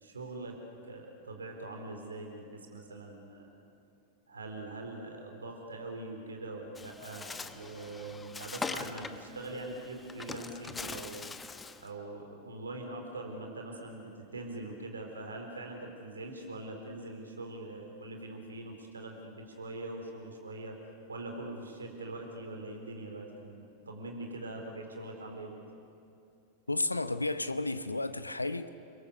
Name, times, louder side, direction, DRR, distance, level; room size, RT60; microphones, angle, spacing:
voice 1, 0.0-0.6 0.8-3.5 4.3-11.3 11.8-20.8 21.1-25.6, right 2 dB, 75° right, 4.0 m, -43 dB
Bird, 6.8-11.9, left 4 dB, 15° left, 1.0 m, -42 dB
voice 2, 26.7-28.7, left 2 dB, 85° left, 0.8 m, -32 dB
29.5 x 22.0 x 7.0 m
figure-of-eight pair, 90°, 0 cm